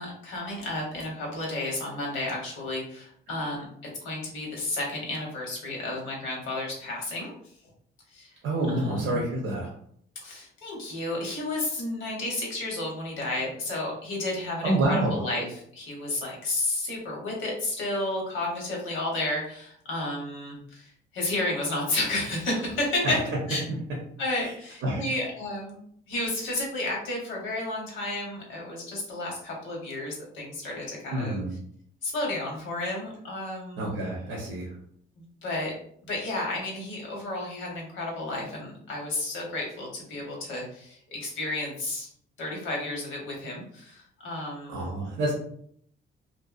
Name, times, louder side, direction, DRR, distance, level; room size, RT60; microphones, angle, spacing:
voice 1, 0.0-3.7 4.0-7.3 8.1-8.3 8.7-9.3 10.2-23.2 23.5-23.6 24.2-25.8 26.1-31.4 32.0-34.0 35.2-35.7 36.1-42.1 42.4-45.0, left 2 dB, 85° left, -2 dB, 1.0 m, -32 dB
voice 2, 8.4-9.7 14.6-15.2 23.0-23.2 24.4-24.5 24.8-25.0 31.1-31.5 33.8-34.7 44.7-45.3, right 1 dB, 85° right, -2 dB, 0.7 m, -27 dB
2.6 x 2.1 x 2.3 m, 0.64 s
cardioid pair, 90°, 20 cm